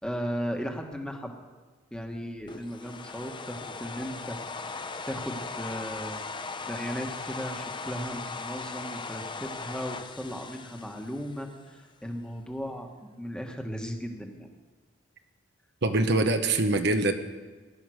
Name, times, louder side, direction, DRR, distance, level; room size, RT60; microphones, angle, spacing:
voice 1, 0.0-1.3 1.9-4.4 4.6-4.7 5.1-6.3 6.7-12.9 13.2-14.5, equal, 5° left, 2 dB, 1.5 m, -36 dB
sound 1, 2.5-11.7, left 4 dB, 25° left, 0.7 m, -39 dB
voice 2, 15.8-17.1, right 2 dB, 60° right, 6 dB, 1.1 m, -24 dB
18.0 x 11.0 x 6.4 m, 1.3 s
head